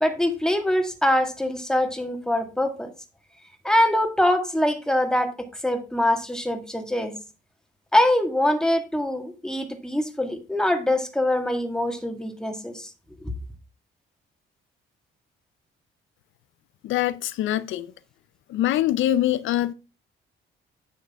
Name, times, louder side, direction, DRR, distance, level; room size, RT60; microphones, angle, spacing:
voice 1, 0.0-2.9 3.6-7.1 7.9-12.9, left 1 dB, 5° left, 1.8 m, -23 dB
voice 2, 16.8-17.9 18.5-19.7, left 13 dB, 80° left, 0.5 m, -23 dB
9.4 x 6.5 x 3.6 m
cardioid pair, 90°, 20 cm